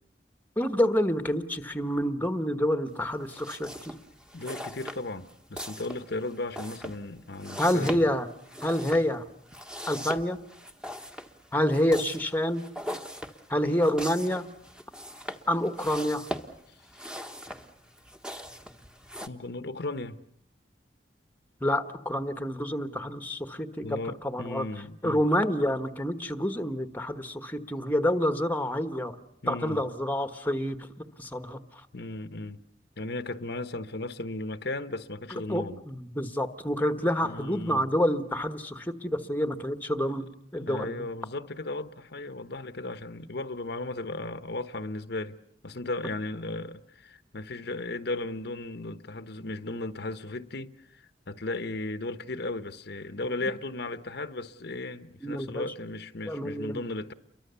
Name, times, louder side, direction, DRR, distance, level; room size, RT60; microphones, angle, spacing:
voice 1, 0.6-3.7 7.6-8.3 8.6-9.2 9.9-10.4 11.5-12.6 13.5-14.4 15.5-16.3 21.6-23.9 24.2-24.7 25.0-29.1 29.5-31.6 35.3-41.1 55.2-55.7 56.3-56.8, equal, 10° left, 1.3 m, -28 dB
sound 1, 3.2-19.3, equal, 5° right, 1.5 m, -41 dB
voice 2, 4.3-8.1 19.2-20.2 23.8-25.2 29.4-29.8 31.9-32.6 33.0-35.8 37.2-37.9 40.0-40.2 40.6-45.4 45.6-57.1, left 2 dB, 65° left, 1.1 m, -36 dB
30.0 x 23.5 x 7.0 m
head